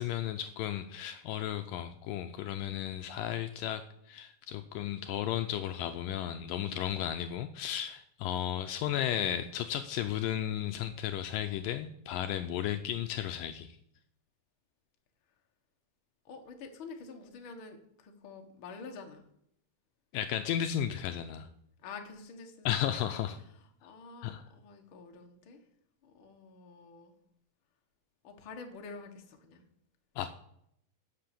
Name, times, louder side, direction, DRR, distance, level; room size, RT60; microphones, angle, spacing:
voice 1, 0.0-13.7 20.1-21.5 22.7-23.4 24.2-24.4 30.2-30.3, left 11 dB, 80° left, 8 dB, 2.1 m, -34 dB
voice 2, 16.2-19.2 21.8-23.2 23.5-25.6 26.0-27.1 28.2-29.6, left 4 dB, 50° left, 3 dB, 1.6 m, -48 dB
11.5 x 7.7 x 6.8 m, 0.73 s
omnidirectional pair, 4.2 m